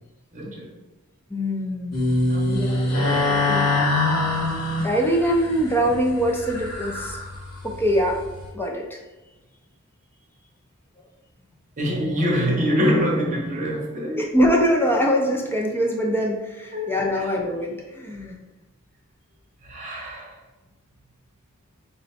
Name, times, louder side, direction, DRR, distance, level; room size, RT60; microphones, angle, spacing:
voice 1, 0.3-0.7 2.3-2.7 11.8-14.3 16.7-17.3 19.6-20.4, equal, 35° right, 0.8 m, -25 dB
voice 2, 1.3-3.7 4.8-7.2 7.6-8.2 8.5-9.0 14.2-18.3, equal, 10° left, 0.5 m, -23 dB
sound 1, 1.9-8.5, left 2 dB, 90° left, 1.2 m, -24 dB
4.0 x 2.2 x 4.1 m
head